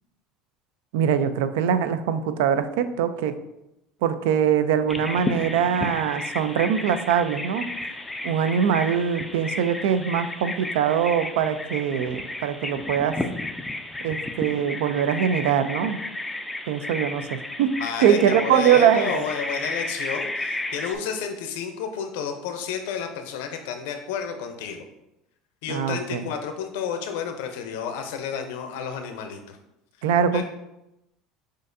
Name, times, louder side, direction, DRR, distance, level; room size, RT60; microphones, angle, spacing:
voice 1, 0.9-3.3 4.0-7.7 8.2-13.2 14.0-16.0 16.7-17.7 18.0-19.2 25.7-26.2 30.0-30.4, right 8 dB, 85° right, 11 dB, 0.3 m, -22 dB
Bird vocalization bird call bird song, 4.9-21.0, left 2 dB, 5° left, 0.3 m, -33 dB
voice 2, 17.8-24.9 25.6-29.6 30.3-30.4, left 7 dB, 80° left, 5 dB, 0.6 m, -31 dB
6.3 x 2.5 x 2.5 m, 0.89 s
supercardioid pair, 125°, 0 cm